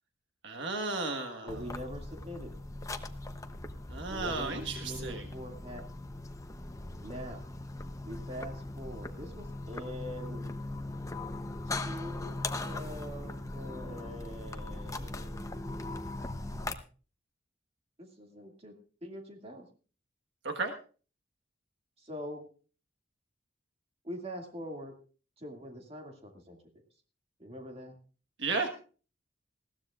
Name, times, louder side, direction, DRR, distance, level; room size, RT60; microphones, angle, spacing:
voice 1, 0.4-1.5 3.9-5.2 20.4-20.7 28.4-28.7, right 3 dB, 70° right, 5 dB, 1.5 m, -34 dB
voice 2, 1.4-2.6 4.1-5.9 7.0-7.4 8.0-10.5 11.6-12.4 12.6-15.6 18.0-18.7 19.0-19.7 22.0-22.4 24.0-24.9 25.4-26.7 27.4-27.9, equal, 35° right, 2 dB, 2.3 m, -43 dB
sound 1, 1.5-16.7, left 2 dB, 15° left, 0.8 m, -39 dB
20.0 x 15.0 x 2.5 m, 0.37 s
head